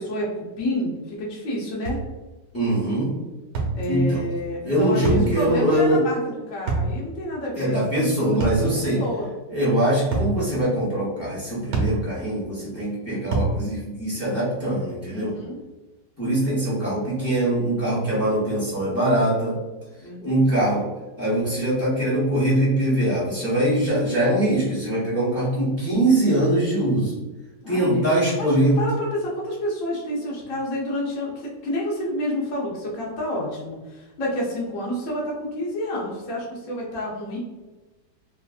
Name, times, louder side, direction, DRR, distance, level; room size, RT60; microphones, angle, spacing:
voice 1, 0.0-2.0 3.7-9.3 15.1-15.6 20.0-20.6 27.6-28.1 28.4-37.4, left 1 dB, 55° left, -4 dB, 1.0 m, -29 dB
sound 1, 1.9-2.1 3.5-3.8 5.0-5.3 6.7-6.9 8.4-8.7 10.1-10.4 11.7-12.0 13.3-13.6, right 4 dB, 70° right, 1.3 m, -23 dB
voice 2, 2.5-3.1 3.9-4.3 4.6-6.0 7.5-9.0 9.5-15.4 16.2-19.6 20.2-20.8 21.2-27.2 27.7-28.8, right 1 dB, 15° left, -9 dB, 0.5 m, -22 dB
3.2 x 2.5 x 2.4 m, 1.1 s
omnidirectional pair, 1.9 m